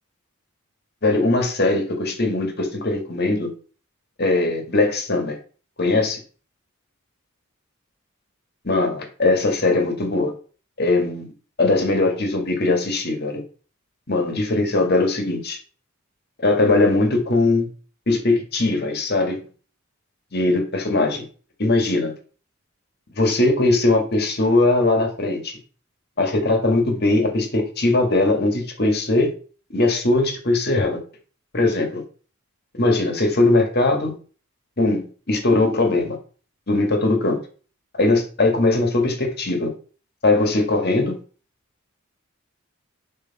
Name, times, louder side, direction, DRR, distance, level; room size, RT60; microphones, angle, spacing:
voice 1, 1.0-3.5 4.2-5.4 5.8-6.2 8.6-10.3 10.8-11.3 11.6-13.4 14.1-15.6 16.4-17.7 18.1-19.4 20.3-21.3 21.6-22.1 23.1-25.5 26.2-29.3 29.7-31.0 31.5-32.0 32.7-34.1 34.8-35.0 35.3-36.2 36.7-37.4 38.0-39.7 40.2-41.2, left 2 dB, 50° left, 4 dB, 1.8 m, -20 dB
6.7 x 5.0 x 4.1 m, 0.38 s
head